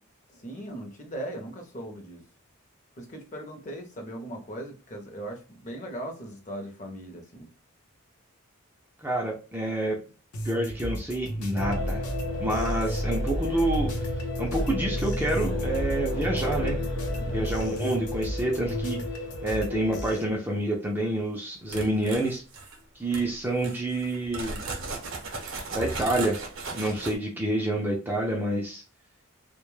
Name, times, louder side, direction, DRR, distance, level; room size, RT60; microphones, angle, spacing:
voice 1, 0.3-2.2 3.0-7.5 17.2-17.5, right 1 dB, 35° left, 0.6 m, -39 dB
voice 2, 9.0-10.0 10.4-12.1 12.4-14.1 14.4-16.8 17.3-19.0 19.4-22.4 22.9-24.6 25.7-26.4 26.7-28.8, right 1 dB, 10° right, 0.4 m, -28 dB
sound 1, 10.3-20.2, equal, 80° left, 0.6 m, -36 dB
sound 2, 11.6-20.3, left 1 dB, 55° left, 0.8 m, -31 dB
sound 3, 21.7-22.8 23.1-23.3 23.6-27.2, right 3 dB, 55° right, 0.6 m, -36 dB
2.2 x 2.0 x 3.0 m
head